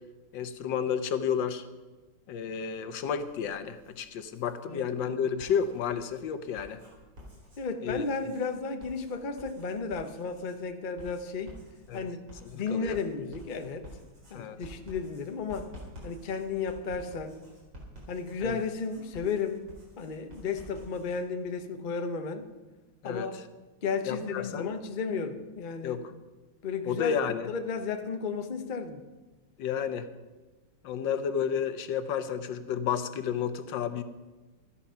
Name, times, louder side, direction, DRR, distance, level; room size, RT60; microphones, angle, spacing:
voice 1, 0.3-1.7 2.3-6.8 7.8-8.0 11.9-12.1 12.4-13.0 14.3-14.6 18.4-18.6 23.0-23.4 24.0-24.7 25.8-26.1 26.8-27.5 29.6-30.1 30.8-34.0, left 7 dB, 65° left, 10 dB, 1.4 m, -31 dB
Writing, 3.0-4.6 5.2-21.2, equal, 55° right, 4.9 m, -51 dB
voice 2, 7.6-11.6 11.9-12.2 12.5-13.9 14.3-15.7 16.0-17.4 18.1-19.6 20.0-22.4 23.0-23.3 23.8-26.0 26.6-29.0, left 5 dB, 80° left, 6 dB, 0.4 m, -33 dB
13.0 x 11.0 x 5.6 m, 1.2 s
omnidirectional pair, 2.4 m